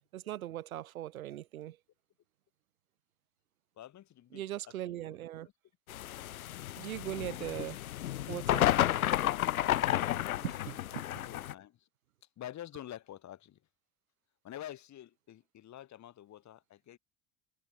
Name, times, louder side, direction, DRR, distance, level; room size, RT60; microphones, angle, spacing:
voice 1, 0.1-1.8 4.3-5.5 6.8-7.8 8.3-8.7 9.5-9.9 10.4-11.0, right 13 dB, 80° right, 1.7 m, -40 dB
voice 2, 3.8-4.4 4.8-5.5 10.3-10.5 10.7-10.8 11.3-11.9 12.4-13.6 14.4-17.0, left 12 dB, 40° left, 3.8 m, -48 dB
sound 1, 5.9-11.5, left 13 dB, 80° left, 1.1 m, -31 dB
hypercardioid pair, 80°, 42 cm